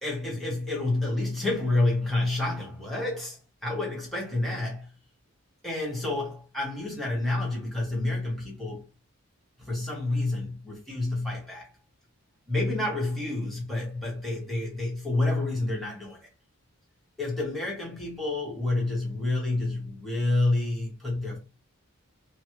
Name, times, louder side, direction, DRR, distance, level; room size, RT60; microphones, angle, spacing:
voice 1, 0.0-4.9 5.6-8.8 9.6-11.7 12.5-16.3 17.2-21.4, left 2 dB, ahead, 1.0 m, -29 dB
3.1 x 2.1 x 3.0 m
head